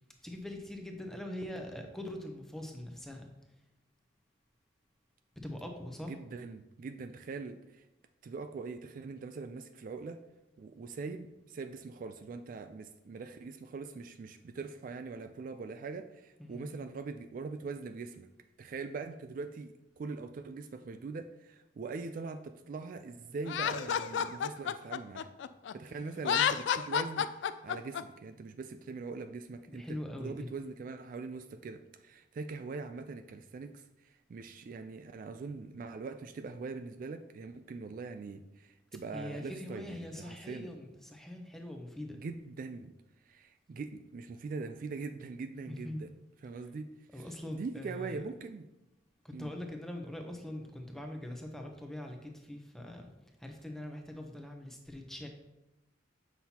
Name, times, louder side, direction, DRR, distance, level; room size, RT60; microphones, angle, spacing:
voice 1, 0.2-3.3 5.4-6.1 16.4-16.7 29.7-30.5 39.1-42.2 45.7-46.0 46.6-46.7 47.1-48.2 49.2-53.1 53.4-55.3, left 1 dB, ahead, 2 dB, 0.7 m, -42 dB
voice 2, 6.1-7.8 8.2-10.2 10.6-18.3 18.6-25.3 25.7-27.3 27.6-40.7 42.1-42.9 43.3-46.1 46.4-46.9 47.1-47.2 47.5-48.7 49.3-49.5, right 4 dB, 45° right, 8 dB, 0.3 m, -42 dB
Laughter, 23.5-25.7 26.2-28.0, left 8 dB, 75° left, 0.3 m, -30 dB
7.4 x 5.8 x 2.8 m, 0.96 s
head